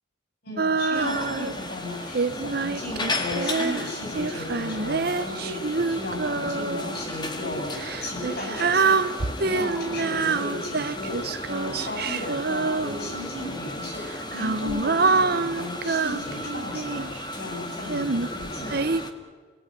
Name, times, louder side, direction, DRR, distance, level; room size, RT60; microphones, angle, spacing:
voice 1, 0.4-18.9, left 1 dB, 55° left, 0 dB, 7.8 m, -35 dB
Female singing, 0.6-1.6 2.1-7.0 7.7-13.3 14.1-17.2 17.9-19.0, right 4 dB, 55° right, 0.9 m, -26 dB
sound 1, 0.9-19.1, left 2 dB, 25° left, 1.9 m, -35 dB
30.0 x 19.0 x 9.4 m, 1.5 s
head